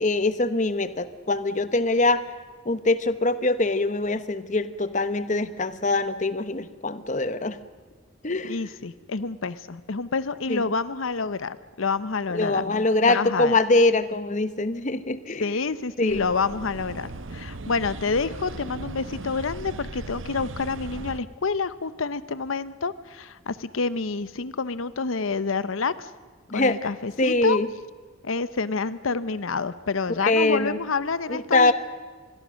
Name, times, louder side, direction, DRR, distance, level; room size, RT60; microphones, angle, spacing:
voice 1, 0.0-2.2 2.6-7.6 8.2-8.5 10.5-10.6 12.3-15.4 16.0-16.2 26.5-26.8 27.2-27.7 30.2-30.8 31.5-31.7, left 2 dB, 35° left, 13 dB, 1.0 m, -23 dB
voice 2, 8.4-13.6 15.4-26.1 26.5-27.6 28.2-31.7, left 4 dB, 85° left, 15 dB, 0.8 m, -28 dB
sound 1, 16.1-21.2, right 2 dB, 75° right, 0.9 m, -37 dB
26.5 x 21.5 x 6.4 m, 1.5 s
head